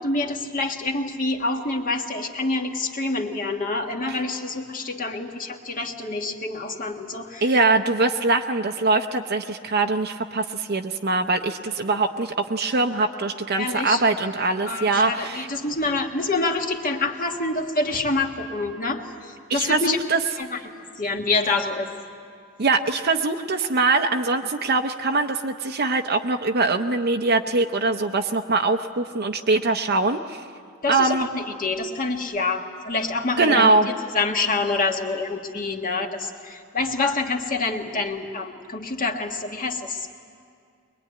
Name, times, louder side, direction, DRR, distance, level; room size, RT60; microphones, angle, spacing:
voice 1, 0.0-7.5 13.6-14.0 14.7-20.0 20.4-20.6 21.0-21.9 30.8-33.7 34.1-40.0, left 3 dB, 40° left, 3 dB, 1.6 m, -27 dB
voice 2, 7.4-15.5 19.5-20.2 22.6-30.4 30.9-31.3 33.4-33.9, right 3 dB, 50° right, 4 dB, 0.7 m, -22 dB
22.5 x 22.0 x 9.5 m, 2.3 s
head